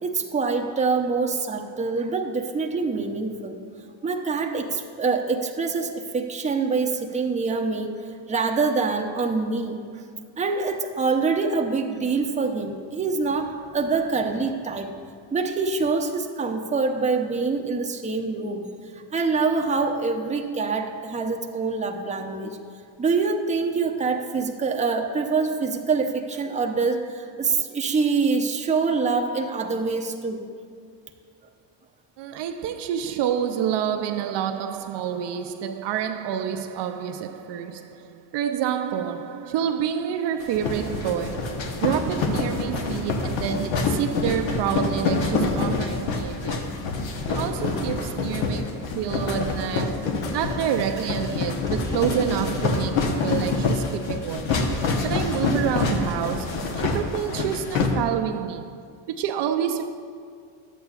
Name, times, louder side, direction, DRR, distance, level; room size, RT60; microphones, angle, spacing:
voice 1, 0.0-3.6 4.0-8.0 8.3-9.8 10.4-15.0 15.3-18.7 18.9-22.6 23.0-30.4, right 4 dB, 15° right, 0.6 m, -25 dB
voice 2, 32.2-46.8 47.3-54.7 55.0-58.8 59.1-59.9, right 9 dB, 60° right, 0.6 m, -28 dB
sound 1, 40.4-57.9, left 4 dB, 70° left, 1.1 m, -26 dB
sound 2, 50.3-55.9, left 1 dB, 5° left, 1.3 m, -38 dB
11.5 x 8.1 x 2.4 m
cardioid pair, 95°, 48 cm